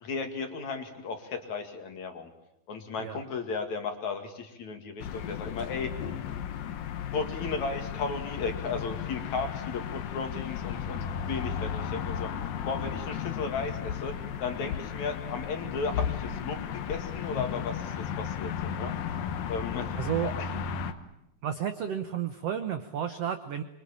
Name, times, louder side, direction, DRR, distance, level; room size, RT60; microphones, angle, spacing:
voice 1, 0.0-2.3 2.7-5.9 6.7-6.8 7.1-12.3 12.7-14.1 14.4-18.9 19.5-19.9 20.4-20.5, left 4 dB, 50° left, 6 dB, 3.4 m, -35 dB
sound 1, 5.0-20.9, left 8 dB, 70° left, 2.9 m, -34 dB
voice 2, 19.9-20.3 21.4-23.6, right 9 dB, 75° right, 9 dB, 1.4 m, -32 dB
26.0 x 23.5 x 8.9 m, 0.86 s
omnidirectional pair, 4.5 m